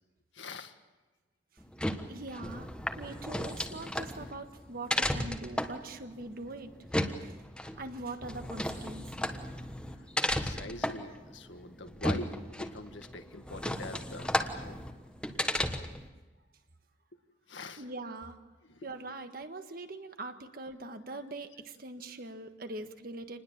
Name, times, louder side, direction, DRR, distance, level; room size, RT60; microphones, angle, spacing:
voice 1, 0.3-0.7 10.3-14.8 17.5-17.8 18.6-18.7, left 2 dB, 75° left, 6 dB, 1.8 m, -43 dB
sound 1, 1.6-16.1, left 1 dB, 5° left, 1.2 m, -35 dB
voice 2, 2.1-2.7 3.0-6.7 7.2-7.3 7.7-9.3 17.8-18.4 18.8-23.4, right 2 dB, 50° right, 7 dB, 1.6 m, -42 dB
27.0 x 20.5 x 7.4 m, 1.2 s
head